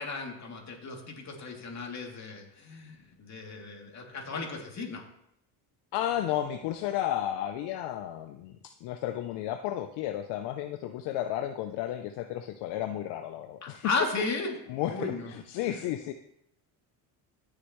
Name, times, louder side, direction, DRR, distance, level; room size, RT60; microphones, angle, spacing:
voice 1, 0.0-5.1 13.6-15.3 15.6-15.8, left 3 dB, 40° left, 0 dB, 2.8 m, -35 dB
voice 2, 5.9-13.9 14.7-16.1, left 12 dB, 70° left, 9 dB, 0.7 m, -33 dB
16.5 x 6.8 x 3.1 m, 0.77 s
supercardioid pair, 85°, 43 cm